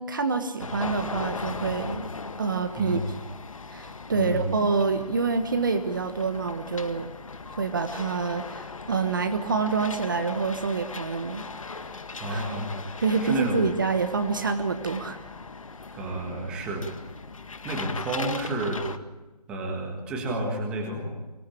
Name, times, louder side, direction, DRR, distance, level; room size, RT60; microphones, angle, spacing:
voice 1, 0.0-2.1 2.4-3.0 3.7-7.1 7.6-11.8 12.3-12.4 13.0-15.2, right 4 dB, 30° right, 7 dB, 1.3 m, -27 dB
sound 1, 0.6-19.0, left 4 dB, 50° left, 1.7 m, -39 dB
voice 2, 2.8-3.1 4.1-4.6 12.2-12.8 13.2-13.6 16.0-16.9 17.6-18.9 19.5-21.1, right 1 dB, 5° right, 1 dB, 1.6 m, -30 dB
24.0 x 18.0 x 8.5 m, 1.1 s
figure-of-eight pair, 170°, 21 cm